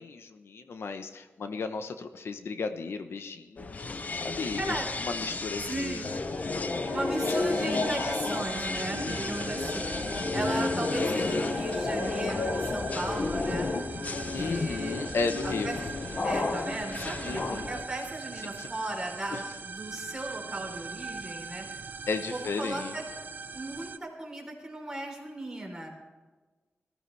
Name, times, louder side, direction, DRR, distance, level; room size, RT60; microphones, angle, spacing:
voice 1, 0.0-3.7 4.2-4.8 5.0-6.0 7.5-8.1 8.9-9.5 14.3-15.7 16.9-17.7 18.6-18.7 19.3-19.4 22.1-23.0, left 4 dB, 70° left, 8 dB, 0.9 m, -35 dB
sound 1, 3.6-17.8, left 3 dB, 35° left, 0.6 m, -31 dB
voice 2, 4.6-4.9 5.6-6.1 6.9-9.9 10.3-13.7 14.1-15.0 15.4-15.8 16.2-21.7 22.3-23.1 23.5-25.9, right 2 dB, 15° right, -1 dB, 3.5 m, -36 dB
sound 2, 5.9-24.0, right 4 dB, 45° right, 0.6 m, -41 dB
20.5 x 14.0 x 3.3 m, 1.3 s
wide cardioid pair, 175°, 4 cm